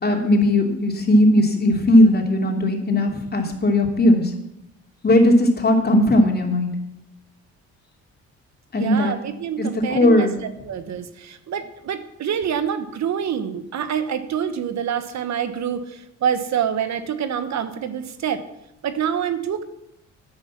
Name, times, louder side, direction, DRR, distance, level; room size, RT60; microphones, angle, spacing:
voice 1, 0.0-4.3 5.0-6.7 8.7-9.1 9.6-10.3, left 1 dB, 30° left, 2 dB, 2.9 m, -17 dB
voice 2, 8.7-10.3 10.6-18.4 18.8-19.6, right 8 dB, 65° right, 11 dB, 1.3 m, -26 dB
10.5 x 9.8 x 7.4 m, 0.81 s
cardioid pair, 90°, 30 cm